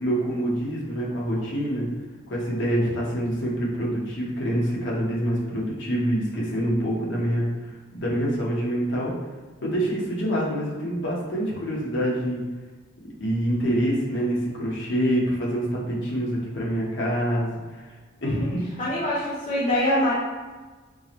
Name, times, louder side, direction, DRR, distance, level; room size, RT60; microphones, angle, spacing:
voice 1, 0.0-1.9 2.3-9.1 9.6-12.4 13.2-17.9 18.2-18.7, equal, 65° left, -4 dB, 1.0 m, -26 dB
voice 2, 18.8-20.1, left 1 dB, 40° left, -7 dB, 0.6 m, -24 dB
4.5 x 2.1 x 2.9 m, 1.3 s
head